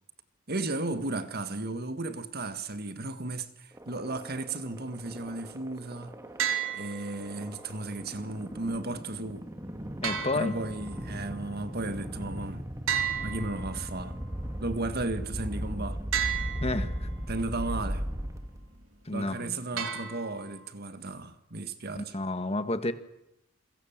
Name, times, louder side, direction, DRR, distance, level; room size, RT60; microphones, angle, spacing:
voice 1, 0.5-6.1 6.7-9.5 10.3-12.6 13.2-14.2 14.6-16.0 17.3-18.0 19.1-22.2, right 2 dB, 45° right, 1.7 m, -34 dB
sound 1, 3.7-18.8, equal, 15° right, 2.0 m, -38 dB
sound 2, 6.4-7.4 10.0-11.1 12.9-14.1 16.1-17.1 19.8-20.7, right 8 dB, 70° right, 3.3 m, -33 dB
voice 2, 10.0-10.6 16.6-17.1 19.0-19.8 21.9-22.9, left 2 dB, 30° left, 1.5 m, -31 dB
29.0 x 22.5 x 7.4 m
head